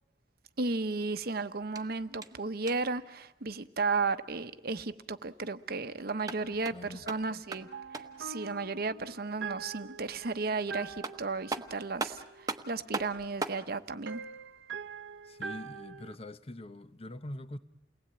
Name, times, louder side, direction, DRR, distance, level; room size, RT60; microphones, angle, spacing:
voice 1, 0.6-7.7 7.9-14.2, right 3 dB, 60° right, 0.9 m, -34 dB
sound 1, 1.6-3.0 6.0-8.3 10.6-10.7 11.0-13.7, right 3 dB, 20° right, 1.1 m, -39 dB
voice 2, 6.3-7.1 15.2-17.6, left 1 dB, 35° left, 0.9 m, -44 dB
sound 2, 7.5-12.7 14.1-16.2, right 5 dB, 90° right, 0.9 m, -44 dB
29.0 x 19.5 x 8.9 m
head